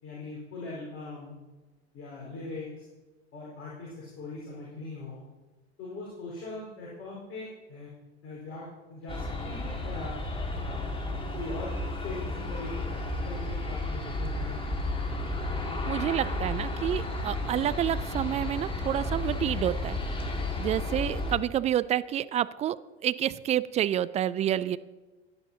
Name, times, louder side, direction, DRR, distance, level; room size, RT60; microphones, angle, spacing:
voice 1, 0.0-1.4 1.9-2.7 3.3-5.2 5.8-7.9 8.2-8.6 8.9-10.2 10.6-11.7 12.0-14.6, left 2 dB, 40° left, -5 dB, 4.6 m, -41 dB
Aircraft, 9.1-21.4, left 2 dB, 15° left, 1.9 m, -32 dB
voice 2, 15.9-20.0 20.6-22.8 23.0-24.8, right 11 dB, 20° right, 16 dB, 0.3 m, -28 dB
18.0 x 10.0 x 2.8 m, 1.2 s
figure-of-eight pair, 75°, 33 cm